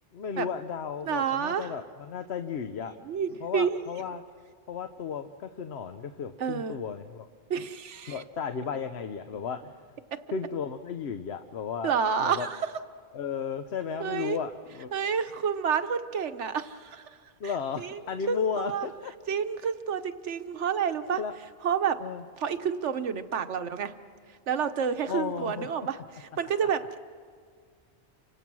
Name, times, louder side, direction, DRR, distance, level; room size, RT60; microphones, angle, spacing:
voice 1, 0.1-2.9 3.4-4.2 4.7-7.3 8.1-9.7 10.3-11.9 12.2-12.5 13.1-14.9 17.4-19.1 21.1-21.3 22.0-22.2 25.0-25.7, left 6 dB, 65° left, 8 dB, 1.0 m, -34 dB
voice 2, 1.0-1.7 2.8-3.8 6.4-6.8 7.5-8.2 11.8-12.6 14.0-14.4 14.9-17.1 17.8-18.0 18.3-18.9 19.3-21.2 21.6-22.0 22.4-23.9 24.5-27.0, right 7 dB, 85° right, 10 dB, 1.3 m, -29 dB
30.0 x 25.5 x 6.2 m, 2.1 s
omnidirectional pair, 1.2 m